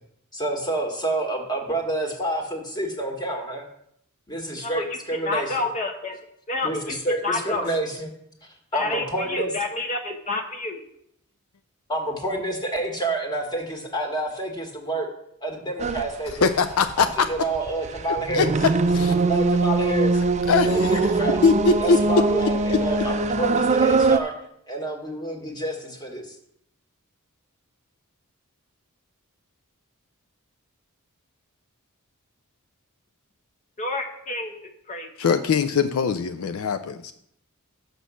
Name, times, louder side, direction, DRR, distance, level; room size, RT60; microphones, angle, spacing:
voice 1, 0.3-3.6 4.3-5.5 6.6-8.1 8.7-9.5 11.9-15.1 15.4-16.6 17.0-18.5 19.1-20.2 20.6-21.4 21.8-24.3 24.7-26.3, right 2 dB, 20° left, 2 dB, 1.6 m, -28 dB
voice 2, 4.6-6.2 6.5-7.7 8.7-10.8 33.8-35.1, left 2 dB, 35° left, 4 dB, 1.0 m, -29 dB
sound 1, 15.8-16.0 16.3-24.2, right 3 dB, 30° right, 0.4 m, -22 dB
voice 3, 16.4-17.3 18.3-18.7 18.9-19.1 20.5-21.1 21.4-22.0 22.7-22.8 35.2-37.1, left 5 dB, 70° left, 8 dB, 0.4 m, -21 dB
6.8 x 6.2 x 6.2 m, 0.72 s
head